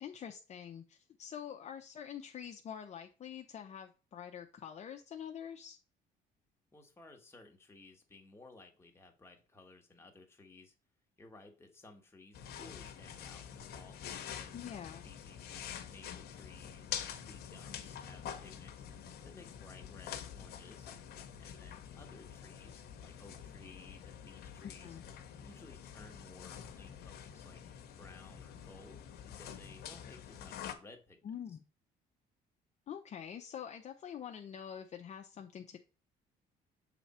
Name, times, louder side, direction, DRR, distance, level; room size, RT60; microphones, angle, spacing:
voice 1, 0.0-5.8 14.5-15.1 24.6-25.0 31.2-31.6 32.9-35.8, left 8 dB, 40° left, 0.6 m, -46 dB
voice 2, 6.7-10.7 11.2-14.7 15.0-18.9 19.2-20.9 21.4-25.0 25.4-29.0 29.3-31.2 31.5-31.6, left 2 dB, 15° left, 1.3 m, -57 dB
sound 1, 12.3-30.7, left 9 dB, 70° left, 0.9 m, -47 dB
7.0 x 3.4 x 4.2 m
cardioid pair, 110°, 17 cm